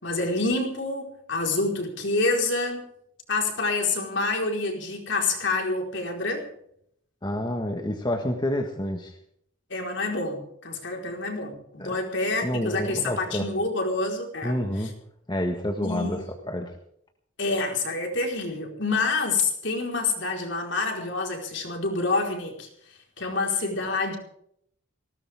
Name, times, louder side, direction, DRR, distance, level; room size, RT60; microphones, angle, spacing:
voice 1, 0.0-2.9 3.3-6.5 9.7-14.9 15.8-16.4 17.4-22.7 23.2-24.2, left 3 dB, 55° left, 2 dB, 4.6 m, -27 dB
voice 2, 7.2-9.1 11.8-12.0 12.4-13.5 14.4-14.9 15.3-16.2 16.5-16.7, left 1 dB, 20° left, 3 dB, 1.6 m, -28 dB
19.5 x 17.5 x 3.7 m, 0.70 s
head